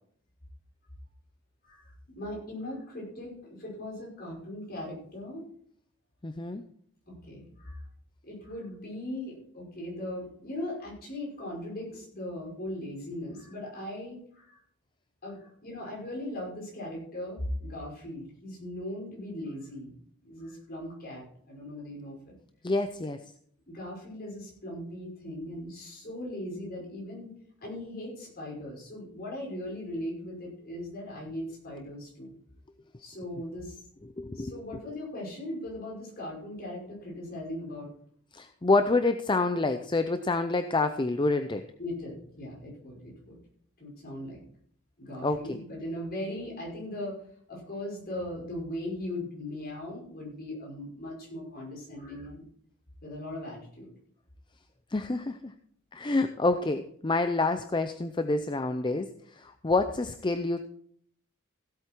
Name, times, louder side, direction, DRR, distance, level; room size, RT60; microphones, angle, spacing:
voice 1, 1.6-5.4 7.1-7.8 8.2-14.6 15.2-20.0 20.2-22.3 23.7-27.3 27.6-32.3 33.0-33.8 34.3-37.9 41.8-43.4 43.8-44.4 45.0-47.2 47.5-52.4 53.0-53.9, left 1 dB, 45° left, -2 dB, 5.6 m, -39 dB
voice 2, 6.2-6.6 22.6-23.2 34.2-34.5 38.3-41.6 45.2-45.6 54.9-55.5 55.9-60.7, left 3 dB, 20° left, 9 dB, 0.5 m, -27 dB
16.0 x 8.3 x 4.5 m, 0.63 s
head